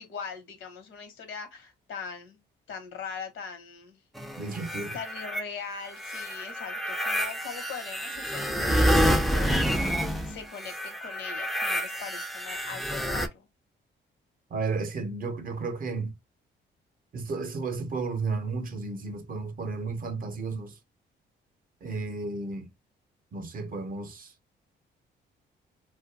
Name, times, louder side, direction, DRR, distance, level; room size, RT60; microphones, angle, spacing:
voice 1, 0.0-2.4 2.7-4.0 4.9-9.9 10.2-13.5, left 6 dB, 75° left, 0.8 m, -41 dB
sound 1, 4.1-5.4 5.9-13.3, equal, ahead, 0.3 m, -28 dB
voice 2, 4.4-5.0 14.5-16.1 17.1-20.8 21.8-22.7 23.3-24.3, right 4 dB, 45° right, 0.6 m, -33 dB
2.4 x 2.1 x 2.6 m
cardioid pair, 90°, 20 cm